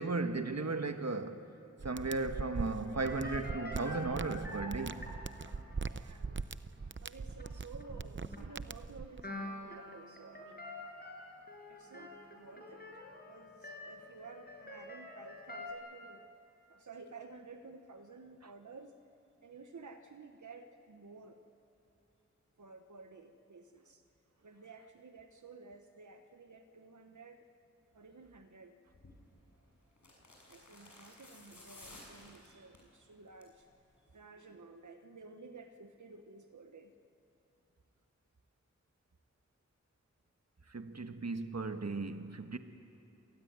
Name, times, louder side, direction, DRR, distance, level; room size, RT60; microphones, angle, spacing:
voice 1, 0.0-1.5 1.8-5.2 40.7-42.6, right 3 dB, 60° right, 1.5 m, -36 dB
sound 1, 1.8-9.2, right 4 dB, 40° right, 0.7 m, -41 dB
sound 2, 2.8-5.8 6.3-6.5 6.7-6.8 7.4-7.9 8.2-8.4 9.2-15.7, left 2 dB, 35° left, 5.5 m, -46 dB
voice 2, 5.8-6.4 7.0-10.7 11.7-12.9 13.2-16.3 16.7-18.9 19.4-21.4 22.6-24.0 24.4-27.4 27.9-28.7 30.5-33.7 34.1-36.9, right 4 dB, 85° right, 1.1 m, -53 dB
sound 3, 28.9-29.2 30.0-32.9 33.3-33.6 33.9-34.0, left 1 dB, 85° left, 6.5 m, -55 dB
27.0 x 19.0 x 9.5 m
wide cardioid pair, 45°, 29 cm